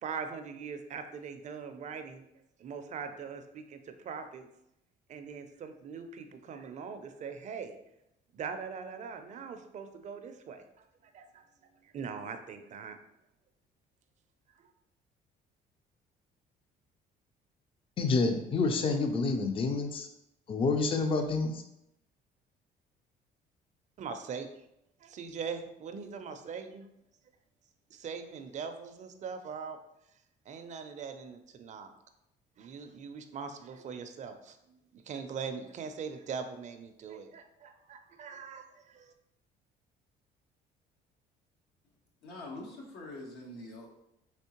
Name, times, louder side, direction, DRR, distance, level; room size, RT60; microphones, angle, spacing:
voice 1, 0.0-2.2 2.6-4.5 5.1-7.8 8.3-10.8 11.1-11.4 11.8-13.0 14.6-14.7 24.0-24.5 25.0-26.9 27.9-29.8 30.5-31.9 32.6-39.1, right 6 dB, 45° right, 7 dB, 0.4 m, -41 dB
voice 2, 18.0-20.1 20.5-21.6, left 3 dB, 30° left, 6 dB, 0.4 m, -28 dB
voice 3, 42.2-43.9, left 2 dB, 80° left, 0 dB, 1.0 m, -44 dB
3.5 x 3.1 x 2.9 m, 0.82 s
cardioid pair, 110°, 17 cm